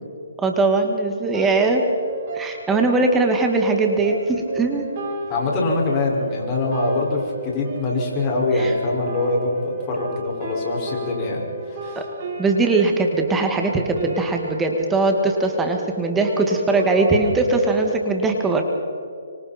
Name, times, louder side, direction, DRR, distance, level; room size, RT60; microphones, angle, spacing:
voice 1, 0.4-1.8 2.3-4.9 8.5-8.7 12.0-12.1 12.4-18.6, right 3 dB, 10° right, 3 dB, 2.1 m, -20 dB
sound 1, 1.3-17.8, right 2 dB, 40° right, 6.8 m, -33 dB
voice 2, 5.3-11.4 11.7-12.0, left 2 dB, 25° left, -2 dB, 5.7 m, -23 dB
25.5 x 25.0 x 4.5 m, 2.4 s
hypercardioid pair, 150°, 0 cm